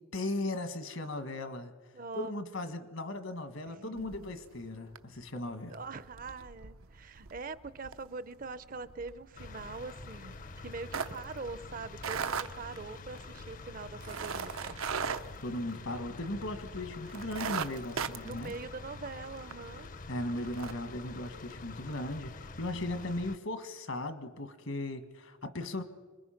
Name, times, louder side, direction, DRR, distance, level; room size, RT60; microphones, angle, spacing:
voice 1, 0.1-1.7 2.1-5.8 15.4-18.5 20.1-25.8, left 1 dB, 75° left, 9 dB, 1.7 m, -37 dB
voice 2, 1.9-2.3 3.6-4.3 5.7-14.8 18.2-19.9, right 4 dB, 40° right, 16 dB, 0.6 m, -43 dB
sound 1, 4.0-4.6 4.9-5.2 5.6-16.3 16.6-16.7 17.1-19.6 20.0-20.1 20.4-20.7, right 6 dB, 90° right, 0.8 m, -39 dB
sound 2, 9.4-23.4, left 3 dB, 40° left, 0.6 m, -47 dB
25.5 x 21.5 x 5.8 m, 1.4 s
head